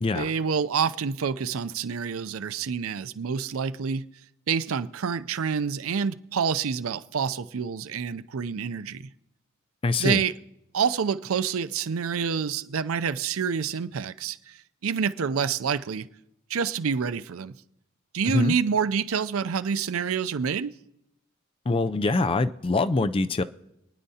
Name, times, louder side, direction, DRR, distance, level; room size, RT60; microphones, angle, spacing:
voice 1, 0.1-4.0 4.5-9.0 10.0-10.3 10.7-16.1 16.5-17.5 18.1-20.7, right 6 dB, 90° right, 0.5 m, -27 dB
voice 2, 9.8-10.2 18.3-18.5 21.7-23.4, left 3 dB, 25° left, 0.4 m, -24 dB
26.5 x 9.9 x 2.8 m
head